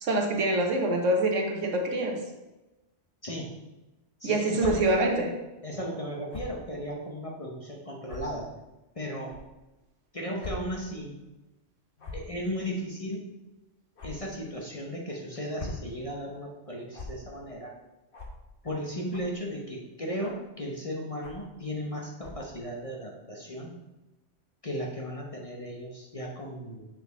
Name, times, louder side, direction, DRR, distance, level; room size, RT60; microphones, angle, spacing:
voice 1, 0.0-2.2 4.2-5.3, right 1 dB, 85° right, 2 dB, 1.4 m, -25 dB
voice 2, 4.2-4.8 5.6-8.5 8.9-9.4 10.1-11.1 12.1-13.3 14.0-17.7 18.6-23.7 24.6-26.9, equal, 30° left, -1 dB, 0.9 m, -36 dB
sound 1, 4.6-4.7 6.3-6.5 7.3-7.4 8.1-8.2 9.2-9.4 10.4-10.5 10.9-11.0 12.0-12.3 14.0-14.1 15.3-15.8 16.9-17.1 18.1-18.3 19.1-19.4 20.2-20.5 21.2-21.5 22.2-22.5, left 3 dB, 50° left, 1.3 m, -40 dB
7.0 x 4.6 x 4.0 m, 1.0 s
omnidirectional pair, 1.2 m